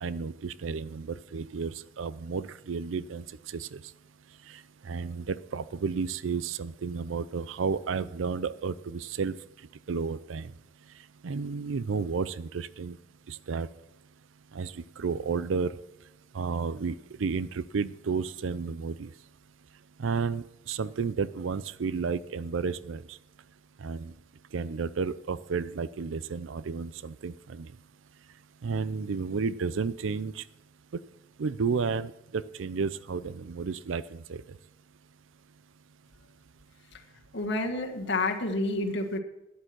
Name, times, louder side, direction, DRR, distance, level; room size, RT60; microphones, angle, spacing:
voice 1, 0.0-3.8 4.5-9.4 9.9-10.5 11.2-13.0 13.3-13.7 14.5-15.8 16.3-19.1 20.0-23.2 23.8-24.1 24.5-27.7 28.6-30.4 31.4-34.4, right 5 dB, 80° right, 17 dB, 0.5 m, -32 dB
voice 2, 37.3-39.2, left 2 dB, 65° left, 1 dB, 1.6 m, -29 dB
12.5 x 10.5 x 6.0 m, 0.93 s
head